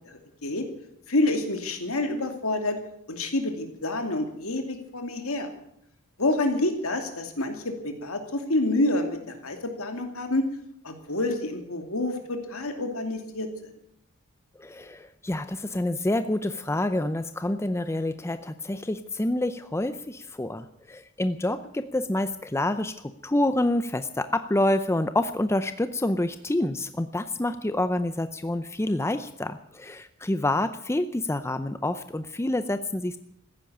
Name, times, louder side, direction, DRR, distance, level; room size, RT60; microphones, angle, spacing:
voice 1, 0.1-0.7 1.1-2.8 3.1-5.5 6.2-10.5 10.8-13.5, left 2 dB, 65° left, 5 dB, 2.6 m, -28 dB
voice 2, 14.6-33.2, left 1 dB, 10° left, 11 dB, 0.6 m, -27 dB
14.5 x 10.5 x 8.6 m, 0.74 s
head